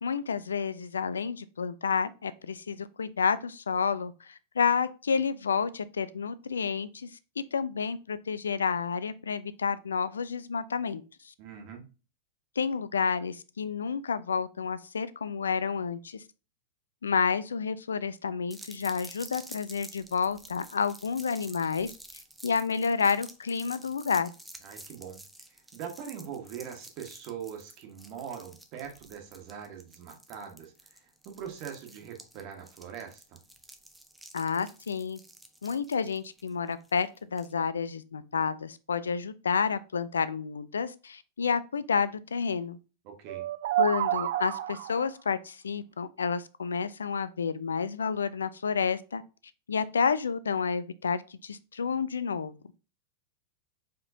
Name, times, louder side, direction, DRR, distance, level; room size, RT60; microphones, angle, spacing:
voice 1, 0.0-7.1 7.5-11.3 12.6-16.2 17.0-21.9 22.4-24.3 34.3-35.2 35.6-42.8 43.8-49.2 49.7-52.5, left 6 dB, 80° left, 0.4 m, -30 dB
voice 2, 11.4-11.8 24.6-25.2 25.5-33.4 43.0-43.5, right 8 dB, 50° right, 1.3 m, -42 dB
sound 1, 18.5-37.5, right 1 dB, 5° right, 0.6 m, -50 dB
sound 2, 43.3-45.1, right 14 dB, 65° right, 0.4 m, -29 dB
4.7 x 3.7 x 2.7 m
hypercardioid pair, 100°, 0 cm